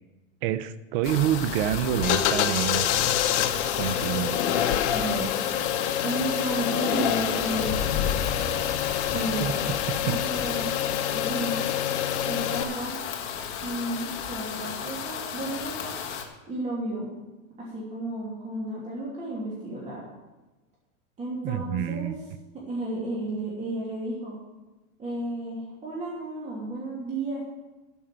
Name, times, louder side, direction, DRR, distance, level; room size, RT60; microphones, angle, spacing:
voice 1, 0.4-2.9 3.7-4.4 9.4-9.5 21.4-22.2, right 10 dB, 40° right, 14 dB, 0.7 m, -27 dB
sound 1, 1.0-16.2, left 7 dB, 30° left, 1.4 m, -34 dB
sound 2, 2.0-12.6, left 10 dB, 55° left, 1.1 m, -27 dB
voice 2, 4.9-5.5 6.0-7.9 8.9-9.6 10.0-11.6 12.3-12.9 13.6-15.9 16.5-17.1 17.6-20.0 21.2-22.1 22.7-24.4 25.0-27.4, right 1 dB, 15° right, -6 dB, 2.8 m, -33 dB
12.5 x 6.4 x 7.3 m, 1.1 s
supercardioid pair, 150°, 40 cm